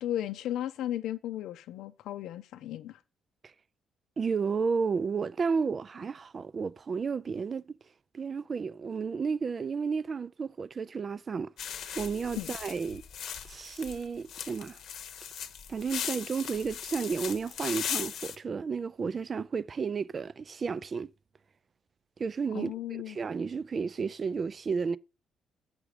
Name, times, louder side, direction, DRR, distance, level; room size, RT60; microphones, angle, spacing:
voice 1, 0.0-3.0 12.3-12.5 22.5-23.2, left 12 dB, 80° left, 0.6 m, -35 dB
voice 2, 4.2-7.8 8.1-11.5 12.0-13.0 13.5-14.8 15.7-21.1 22.2-22.7 23.1-25.0, right 5 dB, 30° right, 0.3 m, -32 dB
sound 1, 11.6-18.4, left 8 dB, 60° left, 0.9 m, -38 dB
8.1 x 6.0 x 4.9 m
cardioid pair, 165°, 0 cm